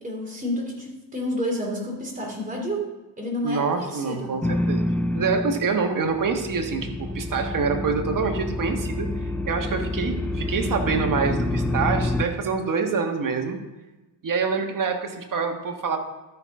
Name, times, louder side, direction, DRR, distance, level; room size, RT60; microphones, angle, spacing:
voice 1, 0.0-2.9 3.2-4.4, equal, 20° right, -1 dB, 3.1 m, -30 dB
voice 2, 3.4-4.8 5.1-13.6 14.2-16.0, right 5 dB, 45° right, 4 dB, 1.5 m, -26 dB
sound 1, 4.4-5.8 6.1-12.2, left 1 dB, 5° left, 0.4 m, -27 dB
13.0 x 5.8 x 3.7 m, 1.1 s
cardioid pair, 85°, 45 cm